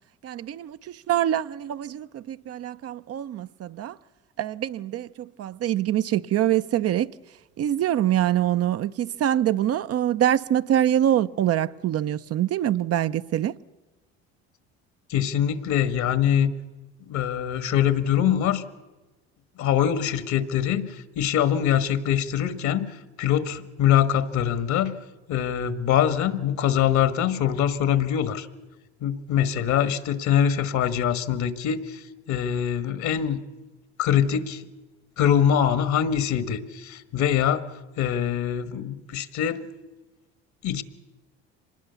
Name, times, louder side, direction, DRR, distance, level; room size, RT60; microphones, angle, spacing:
voice 1, 0.2-4.0 4.4-7.1 7.6-13.5, right 11 dB, 50° right, 0.7 m, -24 dB
voice 2, 15.1-16.5 17.1-18.6 19.6-24.9 25.3-28.5 29.0-33.4 34.0-34.6 35.2-37.7 38.0-39.7 40.6-40.8, left 9 dB, 65° left, 1.6 m, -23 dB
25.0 x 20.0 x 7.0 m
hypercardioid pair, 70°, 32 cm